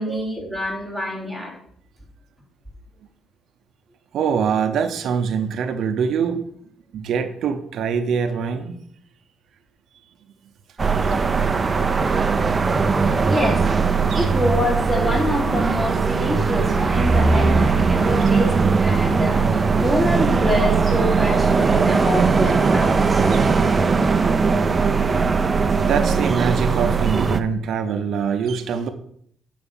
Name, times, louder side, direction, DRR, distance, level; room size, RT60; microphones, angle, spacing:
voice 1, 0.0-1.6 13.3-13.7 14.1-19.5 19.8-23.2, left 1 dB, 10° left, 3.9 m, -26 dB
voice 2, 4.1-6.4 6.9-8.8 11.1-11.2 14.1-14.3 23.3-23.5 25.8-28.9, right 6 dB, 70° right, 0.8 m, -24 dB
sound 1, 10.8-27.4, right 4 dB, 30° right, 0.7 m, -19 dB
8.9 x 5.2 x 7.1 m
cardioid pair, 90°, 0 cm